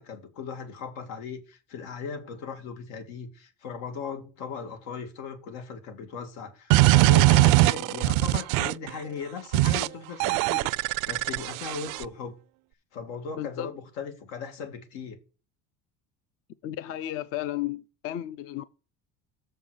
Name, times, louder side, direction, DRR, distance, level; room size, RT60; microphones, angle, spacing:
voice 1, 0.0-12.3 12.9-15.2, left 6 dB, 85° left, 2.3 m, -38 dB
sound 1, 6.7-8.9 9.5-9.9 10.2-12.0, right 18 dB, 70° right, 0.5 m, -21 dB
voice 2, 13.4-13.7 16.6-18.6, left 13 dB, 40° left, 0.5 m, -33 dB
7.0 x 5.7 x 6.4 m
cardioid pair, 140°, 33 cm